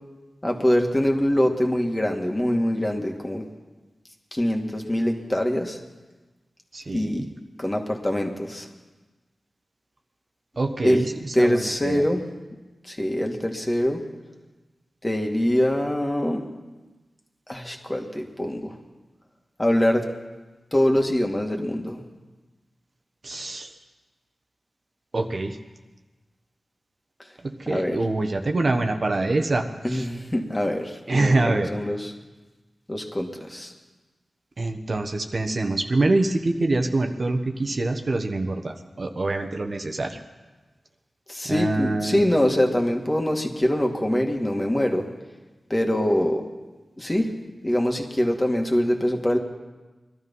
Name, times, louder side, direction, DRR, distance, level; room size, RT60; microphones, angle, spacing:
voice 1, 0.4-3.4 4.3-5.8 6.9-7.3 7.6-8.7 10.8-11.1 11.3-12.2 12.8-14.0 15.0-16.5 17.5-18.7 19.6-20.1 20.7-22.0 27.7-28.0 29.8-32.1 32.9-33.7 41.3-45.0 45.7-46.4 47.0-47.3 47.6-49.4, left 1 dB, 20° left, 2 dB, 2.1 m, -24 dB
voice 2, 6.7-7.3 10.6-12.0 23.2-23.7 25.1-25.6 27.4-30.1 31.1-31.7 34.6-40.2 41.4-42.2, right 2 dB, 55° right, 5 dB, 1.3 m, -25 dB
21.0 x 12.5 x 5.6 m, 1.2 s
cardioid pair, 55°, 0 cm